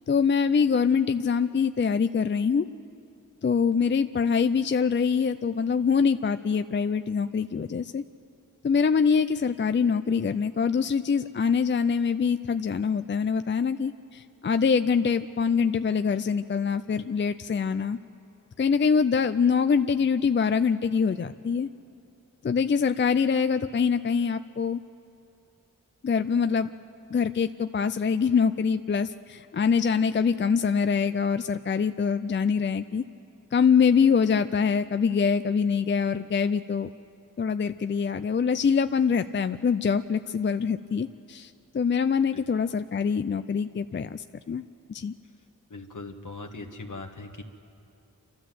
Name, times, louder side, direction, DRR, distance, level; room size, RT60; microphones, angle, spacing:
voice 1, 0.1-2.6 3.4-8.0 8.6-18.0 18.6-21.7 22.4-24.8 26.0-26.7 27.1-33.0 33.5-36.9 37.4-44.6 44.9-45.1, left 6 dB, 35° left, 10 dB, 0.4 m, -24 dB
voice 2, 45.7-47.4, left 3 dB, 70° left, 4 dB, 1.6 m, -40 dB
28.5 x 13.0 x 7.7 m, 2.6 s
wide cardioid pair, 60°, 32 cm